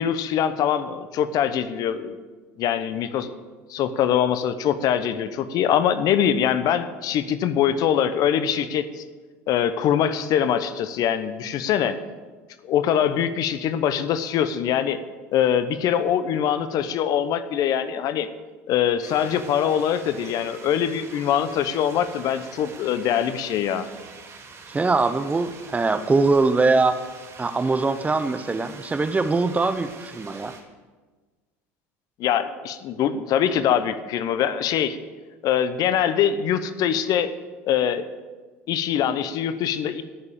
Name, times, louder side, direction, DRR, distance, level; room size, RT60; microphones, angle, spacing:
voice 1, 0.0-2.1 2.6-3.3 3.7-9.0 9.5-12.0 12.6-15.0 15.3-18.3 18.7-23.9 32.2-35.0 35.4-37.3 37.6-38.0 38.7-40.0, left 9 dB, 55° left, 12 dB, 0.9 m, -23 dB
sound 1, 19.0-30.6, right 4 dB, 40° right, 2.6 m, -44 dB
voice 2, 24.7-27.0 27.4-30.5, right 3 dB, 20° right, 11 dB, 0.9 m, -22 dB
14.0 x 6.8 x 7.4 m, 1.3 s
hypercardioid pair, 75°, 8 cm